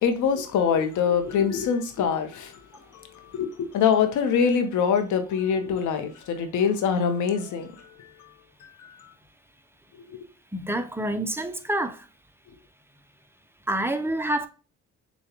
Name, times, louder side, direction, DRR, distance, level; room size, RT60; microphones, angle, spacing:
voice 1, 0.0-2.7 2.9-8.3 8.6-9.1 10.0-10.3, left 7 dB, 80° left, 0.8 m, -25 dB
voice 2, 10.5-12.0 13.7-14.5, right 1 dB, 10° right, 0.5 m, -27 dB
6.9 x 2.3 x 2.9 m
cardioid pair, 90°, 30 cm